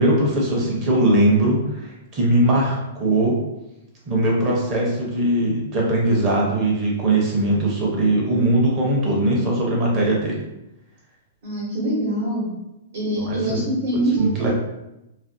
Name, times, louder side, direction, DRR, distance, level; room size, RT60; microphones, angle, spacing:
voice 1, 0.0-3.4 4.1-10.4 13.2-13.6 14.2-14.5, right 1 dB, 20° right, -3 dB, 0.6 m, -20 dB
voice 2, 11.4-12.5 12.9-14.5, right 1 dB, 60° right, -5 dB, 1.0 m, -24 dB
2.5 x 2.5 x 2.5 m, 0.91 s
hypercardioid pair, 170°, 0 cm